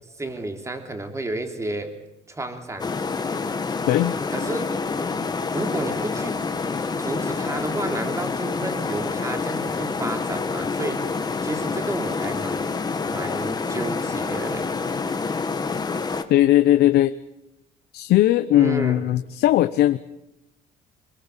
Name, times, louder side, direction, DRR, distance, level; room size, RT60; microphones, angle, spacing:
voice 1, 0.2-1.9 2.3-2.9 4.3-4.7 5.5-6.4 7.0-11.1 11.4-12.7 13.1-14.7 18.5-19.0, right 2 dB, 15° right, 6 dB, 3.3 m, -31 dB
sound 1, 2.8-16.2, left 4 dB, 25° left, 1.9 m, -27 dB
voice 2, 3.9-4.2 16.3-17.1 17.9-20.0, left 13 dB, 70° left, 12 dB, 0.8 m, -18 dB
24.5 x 22.0 x 7.4 m, 0.86 s
cardioid pair, 110°, 17 cm